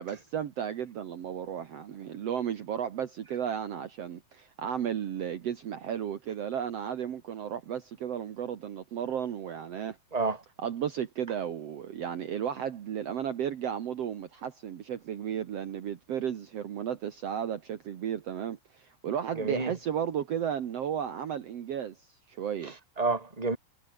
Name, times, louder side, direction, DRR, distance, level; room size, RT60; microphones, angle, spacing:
voice 1, 0.0-10.0 10.6-22.7, right 9 dB, 70° right, 1.4 m, -34 dB
voice 2, 10.1-10.4 19.3-19.7 22.6-23.6, right 3 dB, 10° right, 2.7 m, -30 dB
omnidirectional pair, 5.1 m